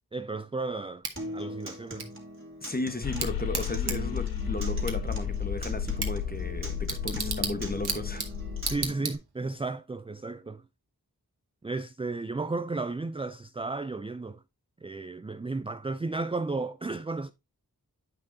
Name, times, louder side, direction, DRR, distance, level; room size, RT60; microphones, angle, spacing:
voice 1, 0.1-1.1 1.3-2.1 8.6-10.7 11.6-14.4 14.8-17.3, right 3 dB, 15° right, 0.3 m, -33 dB
Bicycle / Tick, 1.0-9.6, right 5 dB, 80° right, 1.2 m, -38 dB
Acoustic guitar, 1.2-9.1, equal, 30° right, 2.0 m, -41 dB
voice 2, 2.6-8.3, left 2 dB, 25° left, 1.1 m, -35 dB
sound 1, 3.0-8.9, left 7 dB, 65° left, 0.6 m, -33 dB
8.9 x 5.9 x 2.6 m
wide cardioid pair, 45°, 38 cm